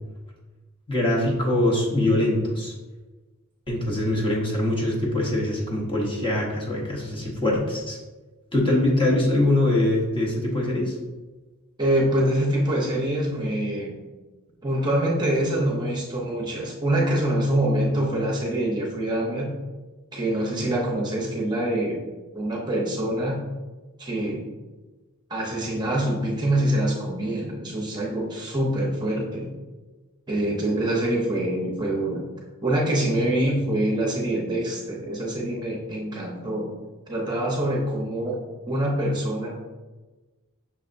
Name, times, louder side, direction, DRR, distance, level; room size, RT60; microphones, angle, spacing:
voice 1, 0.9-2.7 3.7-8.0 8.5-11.0, left 1 dB, 25° left, -3 dB, 0.9 m, -23 dB
voice 2, 11.8-14.0 14.6-19.5 20.1-22.0 22.3-23.4 24.0-24.4 25.3-29.5 30.3-32.3 32.6-36.7 37.1-38.4 38.7-39.5, right 1 dB, 20° right, -3 dB, 0.7 m, -25 dB
6.0 x 3.3 x 2.5 m, 1.2 s
head